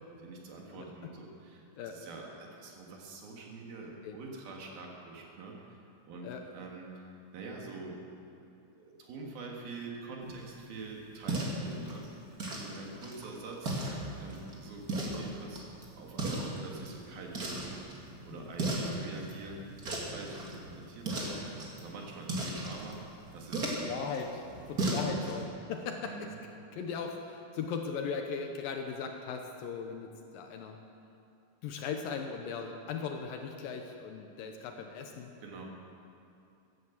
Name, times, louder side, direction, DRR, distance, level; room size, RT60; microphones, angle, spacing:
voice 1, 0.2-5.8 6.1-8.0 8.8-13.9 14.2-15.7 15.9-23.0 23.3-23.7 26.0-26.4 35.4-35.7, right 3 dB, 70° right, 0 dB, 3.6 m, -45 dB
voice 2, 0.7-1.1 1.8-2.0 4.0-4.2 6.2-6.4 11.7-11.9 18.3-18.5 23.6-26.3 26.7-30.8 31.6-35.3, left 6 dB, 75° left, 4 dB, 2.4 m, -38 dB
sound 1, 10.2-25.4, right 2 dB, 30° right, 1.8 m, -38 dB
15.5 x 11.0 x 7.3 m, 2.7 s
omnidirectional pair, 4.6 m